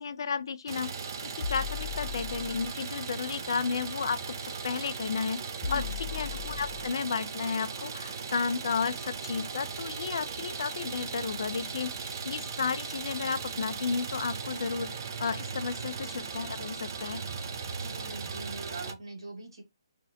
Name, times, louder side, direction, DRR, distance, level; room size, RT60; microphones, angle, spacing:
voice 1, 0.0-5.4 5.7-5.8 6.1-14.9 15.2-17.2, left 5 dB, 60° left, 0.3 m, -33 dB
Idling, 0.7-18.9, right 5 dB, 55° right, 0.5 m, -38 dB
sound 1, 1.4-2.7 4.6-4.7 5.6-7.0 8.8-8.9 9.4-9.5, left 8 dB, 40° left, 0.9 m, -37 dB
voice 2, 5.7-6.0 17.8-19.6, right 2 dB, 80° right, 1.1 m, -42 dB
2.5 x 2.0 x 2.5 m
figure-of-eight pair, 140°, 3 cm